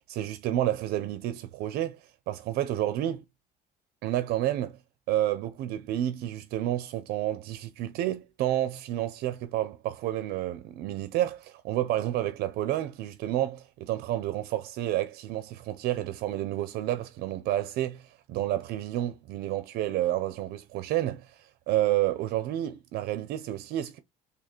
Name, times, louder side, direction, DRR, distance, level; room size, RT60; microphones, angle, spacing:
voice 1, 0.1-2.0 2.3-3.2 4.0-4.8 5.1-21.3 21.7-24.0, right 13 dB, 65° right, 0.5 m, -30 dB
4.0 x 2.8 x 2.8 m
cardioid pair, 155°, 17 cm